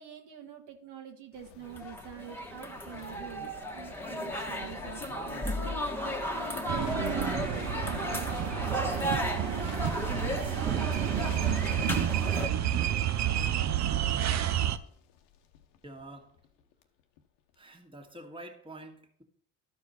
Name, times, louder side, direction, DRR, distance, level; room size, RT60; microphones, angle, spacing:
voice 1, 0.0-6.7 7.9-8.7 9.2-9.6, right 9 dB, 65° right, 3 dB, 1.6 m, -47 dB
sound 1, 1.3-16.8 17.2-17.3, left 8 dB, 75° left, 1.0 m, -47 dB
sound 2, 1.7-12.5, equal, 5° left, 1.4 m, -35 dB
sound 3, 6.7-14.8, right 11 dB, 40° right, 0.6 m, -30 dB
voice 2, 15.8-16.3 17.6-19.2, right 1 dB, 10° right, 2 dB, 1.7 m, -47 dB
12.5 x 4.7 x 4.2 m, 0.65 s
hypercardioid pair, 70°, 43 cm